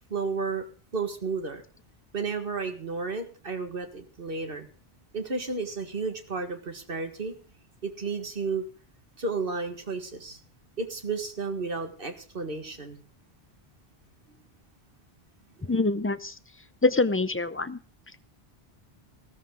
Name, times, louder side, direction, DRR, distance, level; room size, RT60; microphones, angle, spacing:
voice 1, 0.1-0.7 0.9-1.6 2.1-4.7 5.1-7.3 7.8-8.6 9.2-10.4 10.8-13.0 15.6-15.8, right 4 dB, 60° right, 6 dB, 2.0 m, -32 dB
voice 2, 15.7-16.3 16.8-17.8, left 3 dB, 15° left, 13 dB, 0.4 m, -25 dB
15.5 x 13.5 x 3.8 m, 0.41 s
omnidirectional pair, 1.1 m